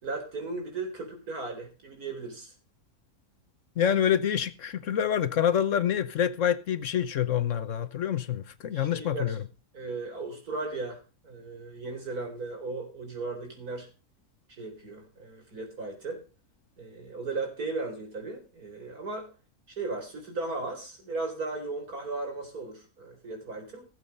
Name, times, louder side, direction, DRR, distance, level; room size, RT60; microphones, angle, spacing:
voice 1, 0.0-2.5 8.7-9.4 9.7-13.9 14.6-16.2 16.8-19.3 19.8-23.9, right 3 dB, 85° right, 4.6 m, -36 dB
voice 2, 3.8-9.4, left 9 dB, 60° left, 1.2 m, -27 dB
16.5 x 8.0 x 5.5 m
omnidirectional pair, 1.5 m